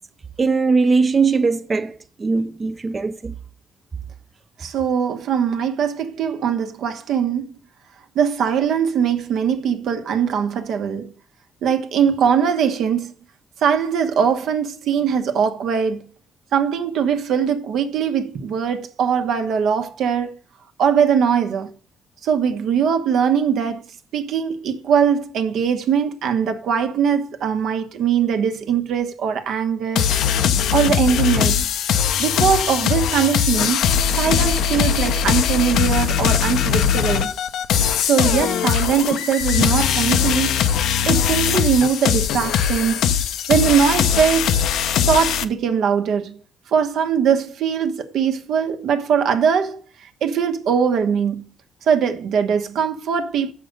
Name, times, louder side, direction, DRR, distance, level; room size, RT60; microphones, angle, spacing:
voice 1, 0.4-3.3, right 4 dB, 30° right, 0.5 m, -20 dB
voice 2, 4.6-7.5 8.1-11.1 11.6-13.1 13.6-16.1 16.5-20.4 20.8-21.7 22.2-23.8 24.1-30.1 30.7-31.7 32.2-33.9 34.2-37.3 38.0-40.6 41.1-43.0 43.5-44.6 45.1-46.4 46.7-49.8 50.2-51.5 51.9-53.5, right 7 dB, 75° right, 1.1 m, -21 dB
sound 1, 30.0-45.4, left 8 dB, 80° left, 0.6 m, -20 dB
6.7 x 5.7 x 6.4 m
cardioid pair, 90°, 0 cm